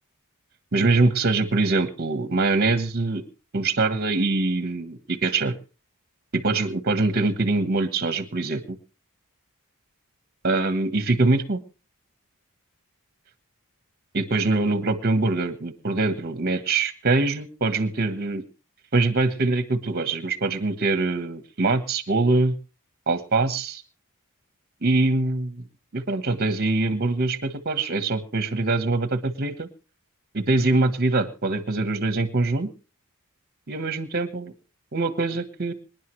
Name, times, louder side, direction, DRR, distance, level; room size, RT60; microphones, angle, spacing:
voice 1, 0.7-3.2 3.5-5.5 6.3-8.8 10.4-11.6 14.1-18.4 18.9-22.5 23.1-23.8 24.8-25.6 25.9-29.7 30.3-32.7 33.7-34.5 34.9-35.7, right 3 dB, 45° right, 12 dB, 1.3 m, -23 dB
25.5 x 10.5 x 3.2 m, 0.31 s
head